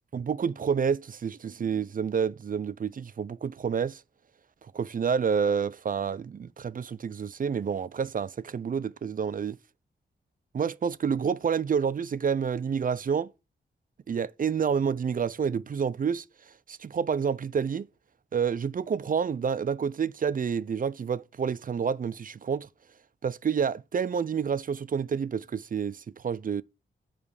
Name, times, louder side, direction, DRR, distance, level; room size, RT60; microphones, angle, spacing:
voice 1, 0.1-4.0 4.7-9.6 10.5-13.3 14.1-16.2 16.7-17.9 18.3-22.7 23.2-26.6, right 6 dB, 45° right, 0.4 m, -29 dB
7.5 x 5.1 x 4.8 m
cardioid pair, 70°, 20 cm